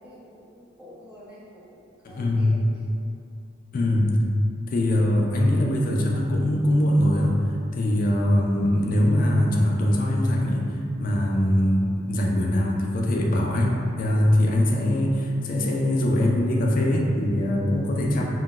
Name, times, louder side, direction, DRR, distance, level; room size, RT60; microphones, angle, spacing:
voice 1, 0.0-1.8 2.1-2.6, equal, 5° right, -11 dB, 0.7 m, -47 dB
voice 2, 2.0-2.5 3.7-4.2 4.7-7.4 7.7-10.7 11.0-18.2, left 1 dB, 45° left, -1 dB, 0.3 m, -22 dB
3.7 x 2.1 x 2.4 m, 2.6 s
head